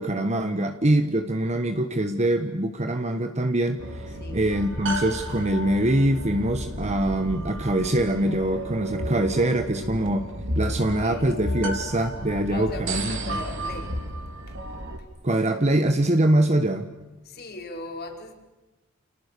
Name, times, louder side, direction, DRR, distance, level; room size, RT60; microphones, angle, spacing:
voice 1, 0.0-10.3 10.6-13.4 15.2-16.9, right 1 dB, 30° right, 1.3 m, -24 dB
sound 1, 3.8-15.0, right 1 dB, 60° right, 3.7 m, -32 dB
voice 2, 11.0-11.5 12.5-14.1 14.5-14.6 15.0-15.1 17.2-18.3, left 2 dB, 50° left, 5.2 m, -38 dB
30.0 x 29.5 x 6.9 m
head